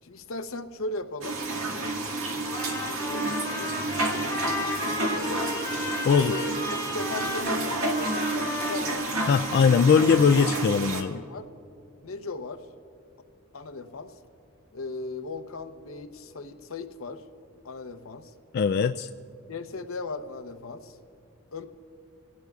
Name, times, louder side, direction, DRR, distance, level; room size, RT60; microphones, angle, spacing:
voice 1, 0.0-2.0 2.8-3.3 3.6-3.9 4.6-5.5 6.1-9.1 10.3-11.5 12.0-12.6 13.5-14.1 14.7-17.2 17.6-18.3 19.5-21.0 21.5-21.7, left 3 dB, 80° left, 9 dB, 0.8 m, -37 dB
sound 1, 1.2-11.0, right 2 dB, 75° right, 1.8 m, -30 dB
Trumpet, 2.4-9.8, left 3 dB, 15° left, 3.8 m, -34 dB
voice 2, 9.3-11.2 18.5-19.1, left 6 dB, 50° left, 8 dB, 0.3 m, -20 dB
27.0 x 18.0 x 2.4 m, 2.5 s
head